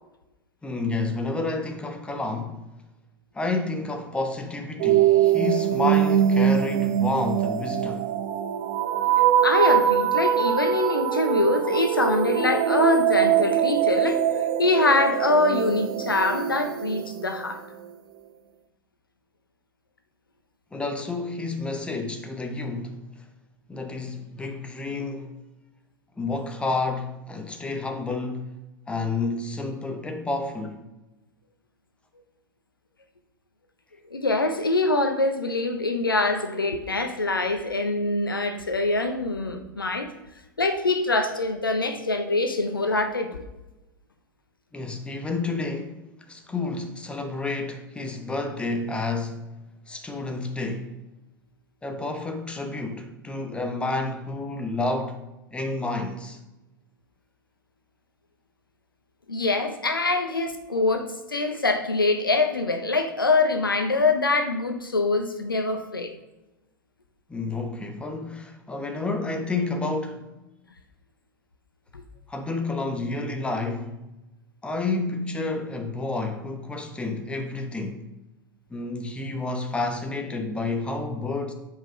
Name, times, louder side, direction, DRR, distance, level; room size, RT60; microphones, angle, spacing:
voice 1, 0.6-2.7 3.3-8.1 20.7-23.1 23.7-25.4 26.2-28.5 28.9-30.8 44.7-49.5 49.9-51.0 51.8-55.2 55.5-56.4 67.3-70.3 72.3-74.1 74.6-78.1 78.7-81.5, left 3 dB, 10° left, 0.9 m, -30 dB
sound 1, 4.8-17.5, right 9 dB, 50° right, 0.8 m, -23 dB
voice 2, 9.4-14.2 14.6-17.6 34.1-40.1 40.6-43.4 59.3-66.1 71.9-72.0, left 2 dB, 90° left, 0.8 m, -24 dB
7.2 x 5.1 x 3.7 m
figure-of-eight pair, 90°, 11 cm